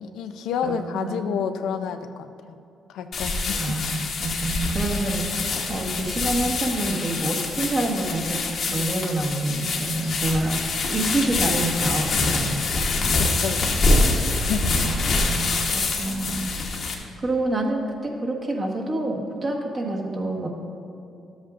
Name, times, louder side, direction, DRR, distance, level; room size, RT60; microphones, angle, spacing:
voice 1, 0.0-2.3 2.9-3.7 10.0-10.1 13.4-13.6 14.3-14.7, left 7 dB, 85° left, 8 dB, 0.4 m, -29 dB
voice 2, 0.6-1.3 3.6-12.8 14.7-20.5, right 2 dB, 35° right, -1 dB, 1.4 m, -28 dB
sound 1, 3.1-16.9, left 3 dB, 55° left, 1.1 m, -25 dB
12.5 x 7.9 x 2.5 m, 2.6 s
cardioid pair, 90°, 0 cm